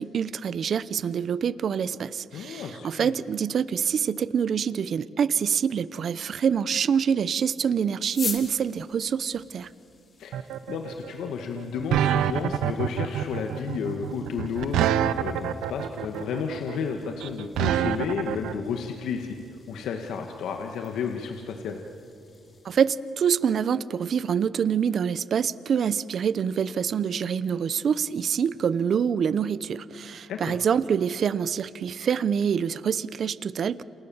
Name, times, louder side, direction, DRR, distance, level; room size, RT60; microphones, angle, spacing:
voice 1, 0.0-9.7 22.6-33.8, right 7 dB, 55° right, 17 dB, 0.8 m, -26 dB
voice 2, 2.3-3.1 10.2-10.4 10.7-19.4 19.7-21.8 30.3-30.5, left 6 dB, 80° left, 4 dB, 1.9 m, -32 dB
sound 1, 8.0-22.8, left 4 dB, 40° left, 4.7 m, -44 dB
sound 2, 10.3-18.5, right 10 dB, 85° right, 0.9 m, -26 dB
29.5 x 28.0 x 7.3 m, 2.5 s
cardioid pair, 90°, 0 cm